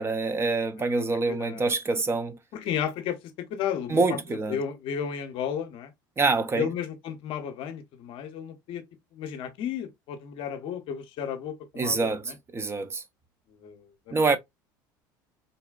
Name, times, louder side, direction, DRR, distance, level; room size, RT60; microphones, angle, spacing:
voice 1, 0.0-2.4 3.9-4.6 6.2-6.7 11.8-13.0 14.1-14.4, right 3 dB, 25° right, 0.5 m, -26 dB
voice 2, 0.9-1.7 2.5-4.2 4.5-5.9 6.6-8.8 9.1-12.2 13.6-14.2, left 8 dB, 55° left, 0.7 m, -33 dB
3.9 x 2.2 x 2.3 m
hypercardioid pair, 80°, 11 cm